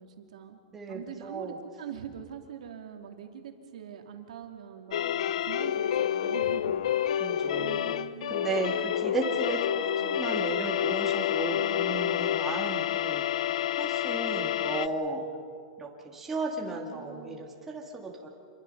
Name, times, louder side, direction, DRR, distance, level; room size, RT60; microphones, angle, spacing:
voice 1, 0.0-0.6 0.9-6.9 7.6-8.5 10.0-10.3 11.5-12.1 16.7-17.4, right 9 dB, 75° right, 3 dB, 2.9 m, -44 dB
voice 2, 0.7-1.6 7.2-8.0 8.3-13.3 13.8-15.2 15.8-18.3, right 3 dB, 10° right, -1 dB, 2.3 m, -35 dB
sound 1, 4.9-14.9, left 11 dB, 65° left, 0.6 m, -29 dB
28.0 x 22.0 x 5.6 m, 2.1 s
supercardioid pair, 170°, 4 cm